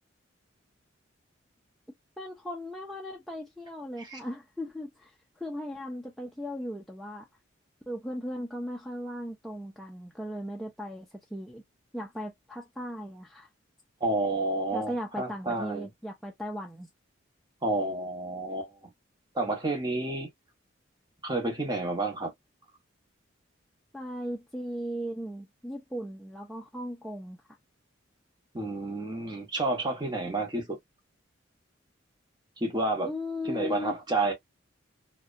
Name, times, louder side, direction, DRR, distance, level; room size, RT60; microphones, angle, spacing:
voice 1, 2.2-7.3 7.9-11.6 11.9-13.5 14.7-16.9 23.9-27.4 33.0-34.0, equal, ahead, 0.3 m, -37 dB
voice 2, 14.0-15.9 17.6-18.7 19.3-20.3 21.2-22.3 28.5-30.8 32.6-33.1 33.4-34.3, right 2 dB, 20° right, 0.7 m, -30 dB
2.6 x 2.1 x 2.4 m
head